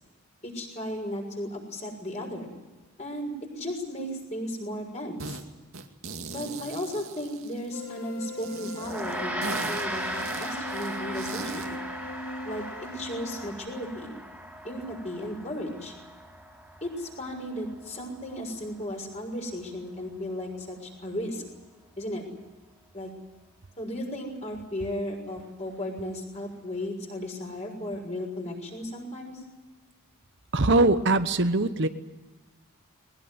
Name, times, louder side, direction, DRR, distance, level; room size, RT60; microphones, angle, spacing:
voice 1, 0.4-2.5 3.0-5.4 6.3-11.8 12.4-14.2 14.6-15.9 16.8-21.4 22.0-22.2 22.9-23.1 23.8-29.3, left 1 dB, 30° left, 2 dB, 6.3 m, -35 dB
sound 1, 5.2-5.4 5.7-7.9 8.4-11.8, right 4 dB, 70° right, 2.3 m, -40 dB
sound 2, 7.7-13.5, left 1 dB, 85° left, 3.0 m, -39 dB
Gong, 8.8-18.4, right 1 dB, 5° right, 4.2 m, -37 dB
voice 2, 30.5-31.9, right 2 dB, 55° right, 10 dB, 1.0 m, -22 dB
21.5 x 20.0 x 9.6 m, 1.2 s
head